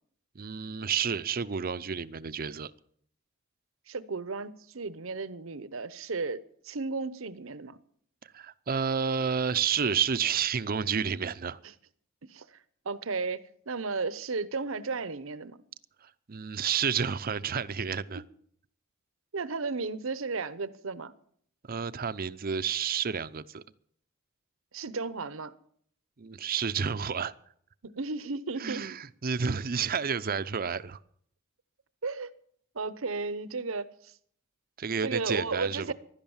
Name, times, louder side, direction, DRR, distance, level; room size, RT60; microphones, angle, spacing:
voice 1, 0.3-2.7 8.2-11.6 16.0-18.2 21.7-23.6 26.2-27.3 28.6-31.0 34.8-35.9, right 6 dB, 45° right, 0.6 m, -30 dB
voice 2, 3.9-7.8 12.3-12.6 12.8-13.4 13.7-15.6 17.8-17.9 19.3-21.1 24.7-25.5 27.8-28.8 32.0-32.3 32.7-34.1 35.0-35.9, right 4 dB, 70° right, 0.9 m, -34 dB
16.0 x 11.5 x 7.2 m
head